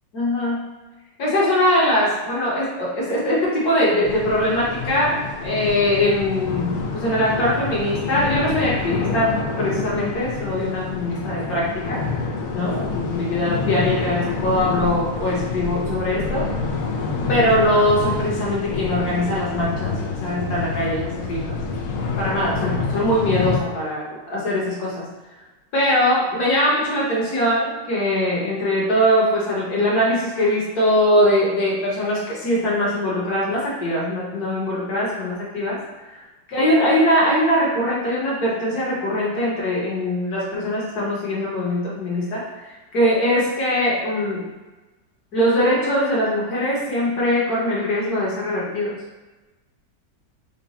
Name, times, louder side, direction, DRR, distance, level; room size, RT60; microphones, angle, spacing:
voice 1, 0.1-0.6 1.2-12.0 12.5-16.5 17.3-21.6 22.2-25.1 25.7-35.8 36.1-36.2 36.5-44.4 45.3-48.9, left 1 dB, 60° left, -5 dB, 1.5 m, -21 dB
sound 1, 4.0-23.6, left 4 dB, 75° left, 0.8 m, -27 dB
3.8 x 2.2 x 4.0 m, 1.2 s
omnidirectional pair, 2.0 m